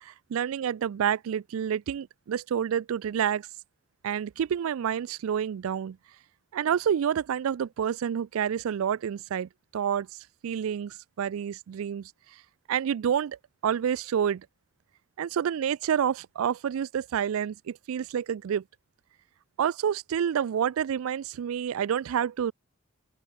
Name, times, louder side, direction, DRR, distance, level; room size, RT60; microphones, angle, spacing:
voice 1, 0.0-3.5 4.0-6.0 6.5-10.1 10.4-12.1 12.7-13.4 13.6-14.5 15.2-18.6 19.6-22.5, right 8 dB, 85° right, 0.3 m, -28 dB
open air
head